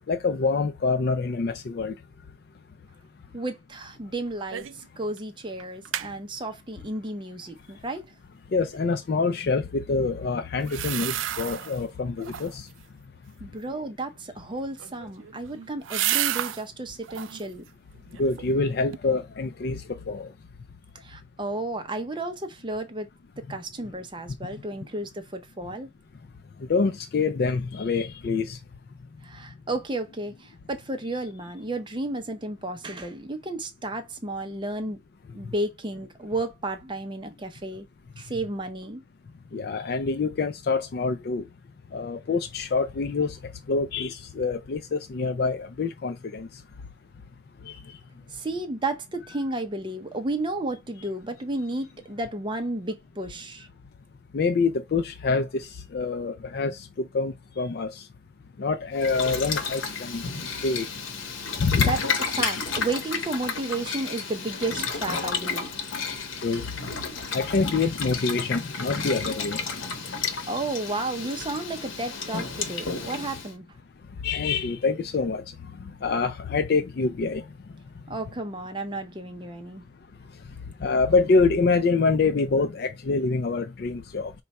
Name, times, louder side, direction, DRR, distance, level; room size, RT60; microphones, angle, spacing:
voice 1, 0.1-1.9 8.5-12.7 18.2-20.3 23.5-23.6 26.7-28.6 39.5-41.4 41.9-46.5 47.7-48.0 54.3-58.1 58.6-60.9 61.6-61.9 66.4-66.7 67.3-69.6 74.2-75.4 75.8-77.4 80.8-84.3, left 4 dB, 55° left, 0.4 m, -26 dB
voice 2, 3.3-8.1 13.4-17.6 20.9-23.1 23.5-25.9 29.2-35.0 35.4-37.9 38.2-39.0 48.3-53.7 61.8-65.7 70.5-73.7 78.1-79.8, right 2 dB, 25° right, 0.5 m, -32 dB
sound 1, 4.5-4.9 5.2-5.3 5.6-6.1 10.6-11.8 12.2-12.7 14.7-16.6 17.0-17.5 17.9-18.6 18.9-19.0, right 12 dB, 85° right, 0.4 m, -31 dB
Boiling, 59.0-73.5, left 5 dB, 85° left, 0.9 m, -32 dB
5.3 x 2.2 x 4.1 m
head